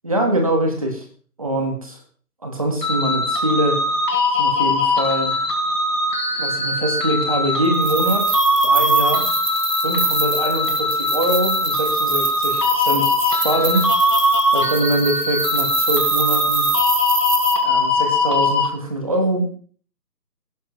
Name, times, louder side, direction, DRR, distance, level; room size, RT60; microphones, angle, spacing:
voice 1, 0.0-1.0 1.4-2.0 2.4-3.8 4.4-5.4 6.4-9.3 9.8-14.1 14.5-16.7 17.6-19.5, right 1 dB, 20° right, 2 dB, 1.6 m, -23 dB
sound 1, 2.8-18.7, left 1 dB, 75° left, 4.6 m, -20 dB
sound 2, 7.7-17.6, right 4 dB, 70° right, 2.0 m, -26 dB
19.0 x 10.5 x 3.2 m, 0.43 s
figure-of-eight pair, 175°, 49 cm